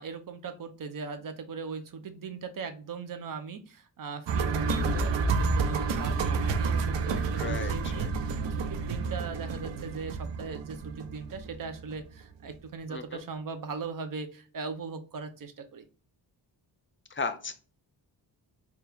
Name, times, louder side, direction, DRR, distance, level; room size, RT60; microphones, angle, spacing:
voice 1, 0.0-15.8, right 5 dB, 50° right, 7 dB, 0.7 m, -39 dB
sound 1, 4.3-12.2 12.5-12.6, right 5 dB, 85° right, 0.6 m, -30 dB
sound 2, 4.6-8.5 9.1-9.2, left 1 dB, 10° right, 0.9 m, -33 dB
voice 2, 7.4-8.1 12.9-13.2 17.1-17.5, left 4 dB, 30° left, 10 dB, 0.5 m, -35 dB
4.2 x 2.4 x 3.4 m, 0.38 s
wide cardioid pair, 110°, 42 cm